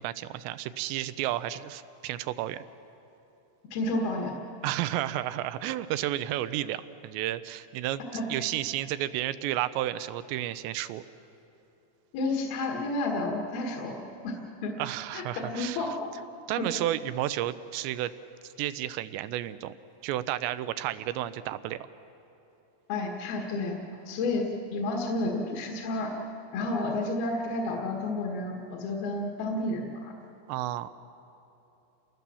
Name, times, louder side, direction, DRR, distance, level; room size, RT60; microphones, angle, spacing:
voice 1, 0.0-2.6 4.6-11.0 14.8-15.8 16.5-18.1 18.4-19.7 20.0-21.8 30.5-30.9, right 13 dB, 80° right, 13 dB, 2.8 m, -32 dB
voice 2, 3.7-4.3 8.1-8.2 12.1-13.9 14.2-14.4 14.6-14.7 15.1-15.9 16.6-16.7 22.9-23.8 24.1-26.1 26.5-30.1, left 2 dB, 60° left, -1 dB, 3.2 m, -31 dB
29.0 x 20.5 x 7.0 m, 3.0 s
omnidirectional pair, 5.3 m